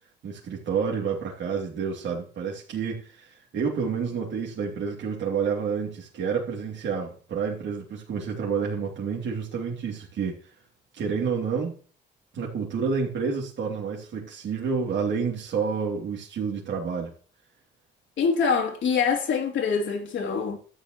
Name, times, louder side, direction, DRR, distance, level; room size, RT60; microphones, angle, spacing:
voice 1, 0.2-10.4 10.9-11.8 12.3-17.1, right 6 dB, 65° right, 2.9 m, -29 dB
voice 2, 18.2-20.6, left 6 dB, 70° left, 3.0 m, -24 dB
12.5 x 9.2 x 3.1 m
cardioid pair, 90°, 20 cm